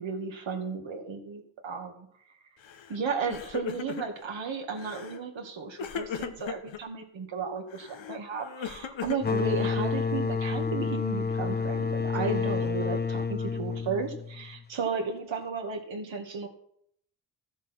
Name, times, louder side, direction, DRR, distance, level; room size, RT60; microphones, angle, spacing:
voice 1, 0.0-2.1 2.9-16.5, right 5 dB, 75° right, 3 dB, 2.3 m, -34 dB
Crying sobbing, 2.6-3.0 3.2-4.3 4.8-5.2 5.8-6.8 7.7-10.0, left 8 dB, 75° left, 1.2 m, -38 dB
sound 1, 9.2-14.7, left 5 dB, 20° left, 0.6 m, -29 dB
13.5 x 7.2 x 6.0 m, 0.69 s
supercardioid pair, 45°, 45 cm